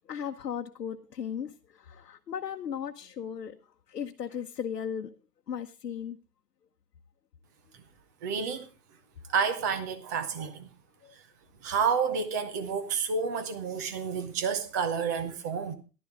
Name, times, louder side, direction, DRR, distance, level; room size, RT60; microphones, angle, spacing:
voice 1, 0.1-3.6 3.9-5.1 5.5-6.2 11.0-11.1, left 8 dB, 80° left, 1.1 m, -36 dB
voice 2, 8.2-8.7 9.3-10.7 11.6-15.7, right 6 dB, 10° right, 0.5 m, -30 dB
14.0 x 11.5 x 3.6 m
hypercardioid pair, 145°, 48 cm